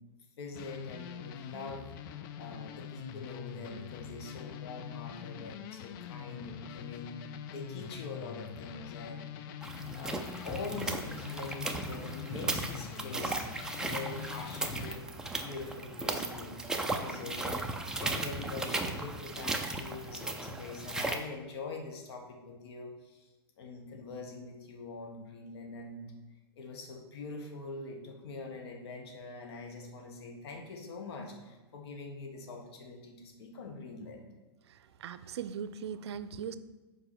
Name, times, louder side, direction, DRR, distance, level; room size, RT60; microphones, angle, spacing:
voice 1, 0.1-9.3 9.9-13.5 13.8-16.6 16.9-23.3 23.6-26.1 26.6-34.3, left 3 dB, 75° left, 3 dB, 1.6 m, -44 dB
sound 1, 0.5-15.0, left 9 dB, 50° left, 0.5 m, -44 dB
sound 2, 9.6-21.2, right 2 dB, 5° right, 0.6 m, -36 dB
voice 2, 34.7-36.6, right 7 dB, 85° right, 14 dB, 0.5 m, -40 dB
5.6 x 4.9 x 6.1 m, 1.2 s
hypercardioid pair, 135°, 14 cm